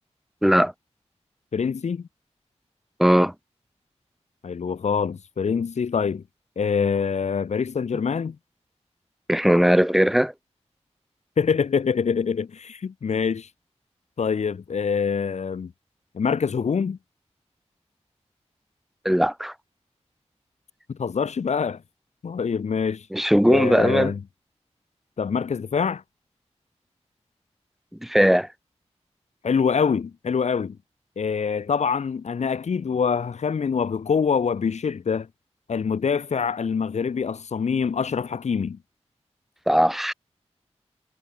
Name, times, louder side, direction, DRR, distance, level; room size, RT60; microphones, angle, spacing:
voice 1, 0.4-0.7 3.0-3.3 9.3-10.3 19.0-19.5 23.1-24.1 28.0-28.5 39.7-40.1, equal, ahead, 0.6 m, -19 dB
voice 2, 1.5-2.0 4.4-6.2 6.6-8.4 11.4-13.5 14.2-15.7 16.1-17.0 20.9-21.8 22.2-23.1 23.5-24.2 25.2-26.0 29.4-30.8 31.2-35.3 35.7-38.8, left 6 dB, 75° left, 0.8 m, -25 dB
wide cardioid pair, 95°, 12 cm